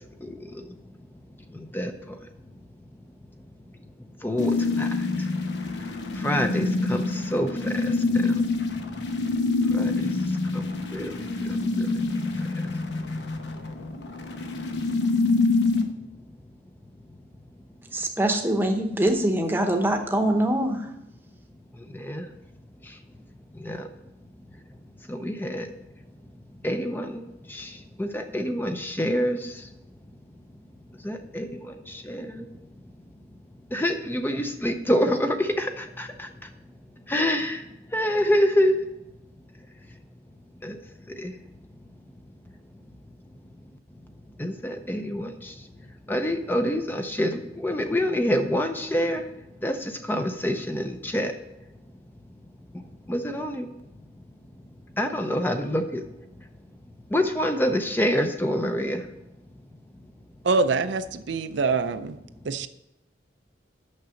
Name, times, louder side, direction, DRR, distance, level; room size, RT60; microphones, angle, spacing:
voice 1, 4.2-4.9 6.2-8.3 9.7-9.9 10.5-10.6 10.9-11.1 11.8-11.9 21.9-22.3 23.6-23.9 25.1-25.7 26.6-27.7 28.0-29.5 31.0-32.5 33.7-36.3 37.1-37.6 37.9-38.8 40.6-40.8 41.2-41.3 44.4-45.5 46.1-49.2 49.6-51.3 53.1-53.7 55.0-56.0 57.1-59.0, equal, 10° left, 6 dB, 0.5 m, -26 dB
sound 1, 4.4-15.8, left 3 dB, 70° left, 0.9 m, -26 dB
voice 2, 17.9-20.8, right 1 dB, 10° right, 4 dB, 0.8 m, -23 dB
voice 3, 60.4-62.2 62.4-62.7, right 4 dB, 70° right, 10 dB, 0.5 m, -25 dB
6.4 x 6.0 x 7.0 m, 0.89 s
head